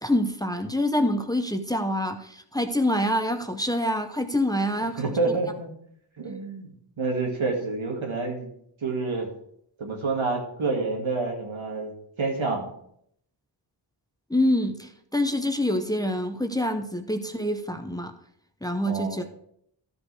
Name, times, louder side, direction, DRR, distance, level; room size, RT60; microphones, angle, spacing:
voice 1, 0.0-5.2 14.3-18.1 18.6-19.3, left 1 dB, 10° left, 6 dB, 0.8 m, -26 dB
voice 2, 5.0-5.7 6.2-6.7 7.0-8.5 8.8-9.3 9.8-11.9 12.2-12.7 18.9-19.3, right 3 dB, 85° right, 0 dB, 2.2 m, -28 dB
13.5 x 5.3 x 4.7 m, 0.70 s
wide cardioid pair, 75°, 46 cm